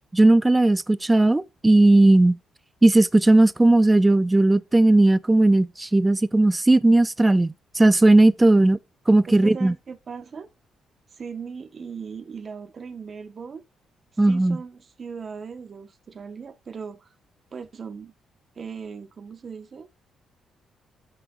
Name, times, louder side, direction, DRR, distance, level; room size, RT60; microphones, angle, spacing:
voice 1, 0.1-2.4 2.8-8.8 9.1-9.7 14.2-14.6, right 2 dB, 15° right, 0.5 m, -17 dB
voice 2, 9.3-10.5 11.2-13.6 14.3-17.1 17.5-18.1 18.5-19.9, right 6 dB, 45° right, 1.5 m, -38 dB
13.0 x 6.2 x 2.6 m
cardioid pair, 90°, 0 cm